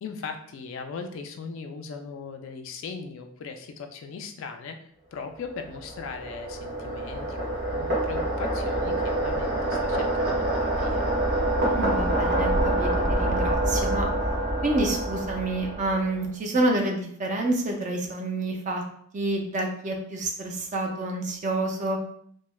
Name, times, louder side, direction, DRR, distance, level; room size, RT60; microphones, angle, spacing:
voice 1, 0.0-11.2, left 5 dB, 65° left, 5 dB, 0.3 m, -39 dB
sound 1, 5.5-16.2, right 1 dB, 50° right, 0.9 m, -26 dB
voice 2, 11.7-12.9 13.2-14.1 14.6-18.8 19.1-22.0, right 2 dB, 35° right, 2 dB, 0.4 m, -28 dB
3.0 x 2.0 x 2.2 m, 0.65 s
head